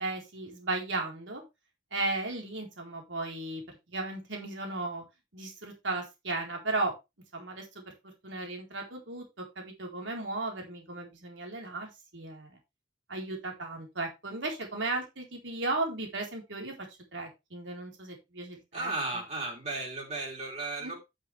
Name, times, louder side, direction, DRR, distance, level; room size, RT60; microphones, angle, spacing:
voice 1, 0.0-1.4 1.9-3.6 3.9-5.0 5.3-6.9 7.3-9.2 9.6-12.6 13.1-16.7 17.1-18.9 20.8-21.0, right 2 dB, 80° right, 1 dB, 4.0 m, -35 dB
voice 2, 18.7-21.0, right 2 dB, 35° right, -1 dB, 3.3 m, -35 dB
9.3 x 7.7 x 3.3 m, 0.23 s
head